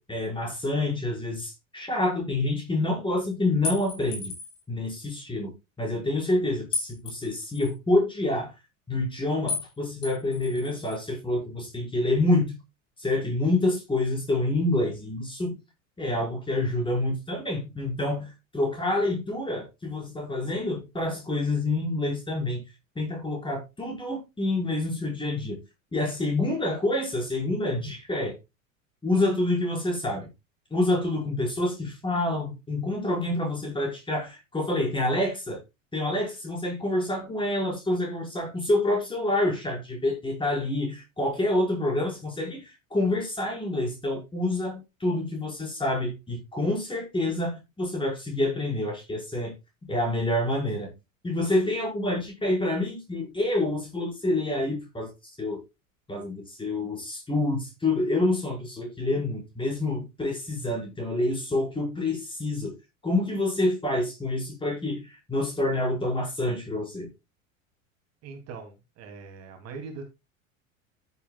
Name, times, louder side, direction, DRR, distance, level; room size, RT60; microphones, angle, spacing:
voice 1, 0.0-4.3 4.7-5.5 5.8-8.5 8.9-12.6 13.0-15.5 16.0-22.6 23.0-25.6 25.9-28.4 29.0-30.3 30.7-35.6 35.9-49.5 49.9-50.9 51.2-55.1 55.4-55.6 56.1-62.7 63.0-67.1, left 2 dB, 10° left, 5.1 m, -27 dB
sound 1, 3.6-4.6 6.7-7.7 9.5-9.7 10.0-11.0, left 5 dB, 35° left, 7.1 m, -34 dB
voice 2, 68.2-70.0, right 4 dB, 40° right, 2.8 m, -41 dB
14.5 x 8.2 x 2.3 m
figure-of-eight pair, 80°, 41 cm